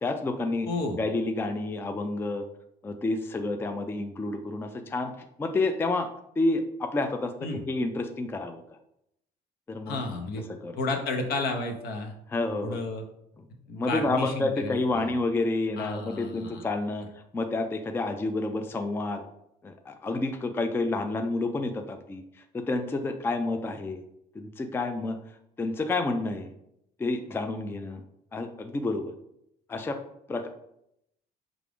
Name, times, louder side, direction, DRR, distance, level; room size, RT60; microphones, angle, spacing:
voice 1, 0.0-0.7 0.9-2.5 2.8-6.1 6.4-8.6 9.7-10.0 10.6-10.8 12.3-12.8 13.8-17.1 17.3-19.2 19.6-22.2 22.5-24.0 24.4-25.2 25.6-26.5 27.0-28.0 28.3-29.1 29.7-30.0 30.3-30.5, left 2 dB, 15° left, 6 dB, 0.3 m, -29 dB
voice 2, 0.7-1.0 7.4-7.6 9.9-10.4 10.8-12.1 12.6-13.0 13.7-15.1 15.8-16.6, left 2 dB, 70° left, 4 dB, 0.8 m, -32 dB
4.8 x 2.5 x 3.4 m, 0.80 s
cardioid pair, 110°, 17 cm